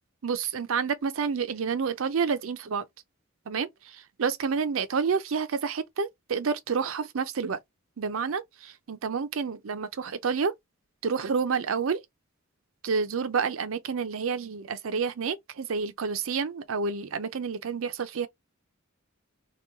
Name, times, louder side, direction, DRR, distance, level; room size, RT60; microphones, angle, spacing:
voice 1, 0.2-2.8 3.5-7.6 8.0-10.5 11.0-12.0 12.8-18.3, right 5 dB, 70° right, 0.5 m, -29 dB
3.0 x 2.2 x 3.4 m
head